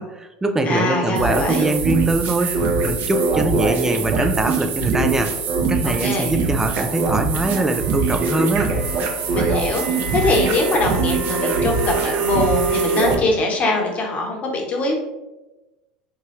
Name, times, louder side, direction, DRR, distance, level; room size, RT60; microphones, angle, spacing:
voice 1, 0.0-2.6 2.8-5.3 5.7-8.7, right 2 dB, 15° right, 7 dB, 0.4 m, -22 dB
voice 2, 0.6-1.7 5.8-6.3 9.3-14.9, left 2 dB, 40° left, 1 dB, 1.0 m, -22 dB
sound 1, 1.2-13.1, right 4 dB, 50° right, 0.7 m, -22 dB
4.5 x 2.3 x 3.1 m, 1.1 s
hypercardioid pair, 85°, 4 cm